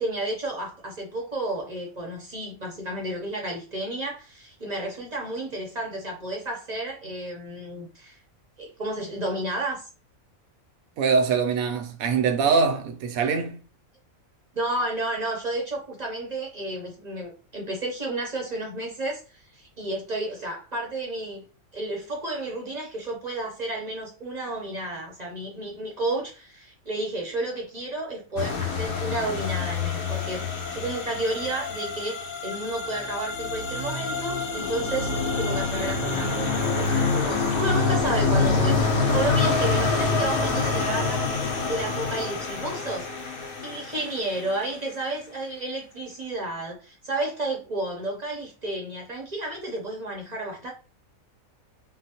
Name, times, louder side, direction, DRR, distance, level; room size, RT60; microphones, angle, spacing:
voice 1, 0.0-8.2 8.6-9.9 14.5-19.2 19.5-21.5 21.7-30.4 30.7-35.1 35.4-38.8 39.1-43.4 43.6-50.7, right 2 dB, 40° right, 0.6 m, -31 dB
voice 2, 11.0-13.6, right 5 dB, 75° right, 1.0 m, -23 dB
sound 1, 28.4-44.5, left 4 dB, 80° left, 1.1 m, -26 dB
3.8 x 2.0 x 2.8 m
omnidirectional pair, 1.5 m